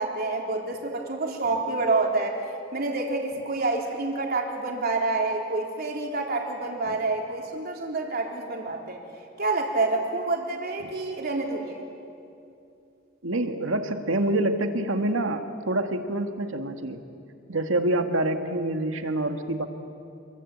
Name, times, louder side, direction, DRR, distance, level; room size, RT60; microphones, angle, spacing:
voice 1, 0.0-2.4 2.7-9.0 9.4-11.8, right 3 dB, 50° right, 0 dB, 3.8 m, -28 dB
voice 2, 13.2-17.0 17.5-19.7, right 1 dB, 90° right, 6 dB, 2.0 m, -26 dB
27.5 x 22.5 x 8.7 m, 2.6 s
head